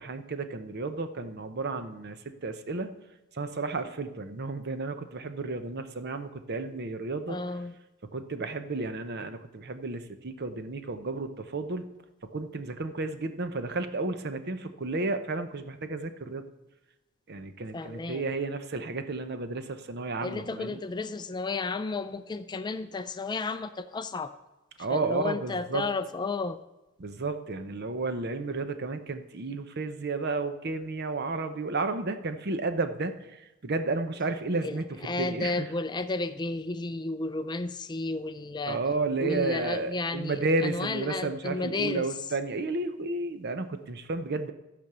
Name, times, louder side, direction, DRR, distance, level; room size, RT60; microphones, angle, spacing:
voice 1, 0.0-2.9 3.3-7.4 8.0-11.8 12.3-16.4 17.3-20.8 24.8-25.8 27.0-35.7 38.7-44.5, right 3 dB, 50° right, 9 dB, 0.8 m, -32 dB
voice 2, 7.3-7.7 17.7-18.2 20.2-24.3 24.9-26.6 34.6-34.8 35.0-38.8 39.2-42.1, left 3 dB, 20° left, 11 dB, 0.4 m, -32 dB
13.5 x 5.3 x 6.8 m, 1.0 s
head